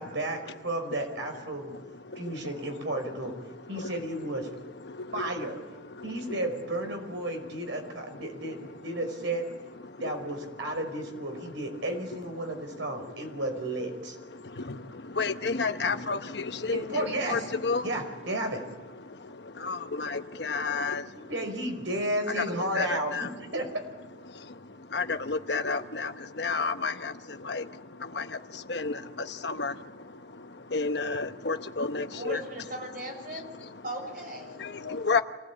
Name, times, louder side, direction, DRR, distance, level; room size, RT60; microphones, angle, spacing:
voice 1, 0.0-1.7 2.2-3.3 3.7-4.5 5.1-5.6 6.0-9.5 10.0-14.2 16.7-17.4 17.8-18.6 21.1-23.3 23.5-23.7, right 1 dB, 90° right, 4 dB, 5.3 m, -33 dB
voice 2, 1.5-6.5 7.2-8.9 9.8-10.9 11.3-11.7 12.4-13.4 14.2-21.3 22.3-23.5 24.2-32.4 33.2-33.8 34.4-35.2, left 4 dB, 65° left, 9 dB, 1.1 m, -34 dB
voice 3, 32.1-33.5 33.8-34.6 34.8-35.2, right 1 dB, 50° right, 3 dB, 6.5 m, -39 dB
26.5 x 17.0 x 8.7 m, 1.2 s
head